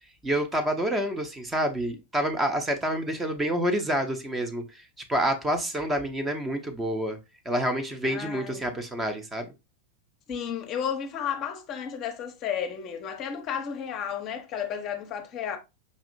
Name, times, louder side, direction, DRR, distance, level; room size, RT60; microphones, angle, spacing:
voice 1, 0.2-4.6 5.1-7.2 7.5-9.4, right 1 dB, 10° right, 0.7 m, -28 dB
voice 2, 8.0-8.8 10.3-15.6, left 8 dB, 35° left, 0.7 m, -33 dB
5.2 x 2.8 x 2.5 m
figure-of-eight pair, 90°, 0 cm